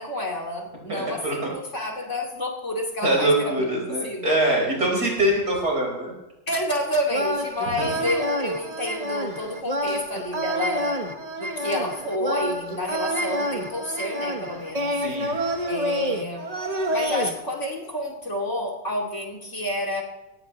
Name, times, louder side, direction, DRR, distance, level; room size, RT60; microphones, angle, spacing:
voice 1, 0.0-4.3 6.5-10.9 11.4-15.0 15.6-16.5 16.9-20.0, left 1 dB, 40° left, -1 dB, 2.9 m, -29 dB
voice 2, 0.9-1.5 3.0-6.1 7.7-8.0 9.8-9.9 15.0-15.6, right 1 dB, 50° right, -1 dB, 5.3 m, -24 dB
sound 1, 7.1-17.3, equal, 25° right, 1.0 m, -28 dB
18.0 x 16.0 x 3.1 m, 1.0 s
omnidirectional pair, 2.1 m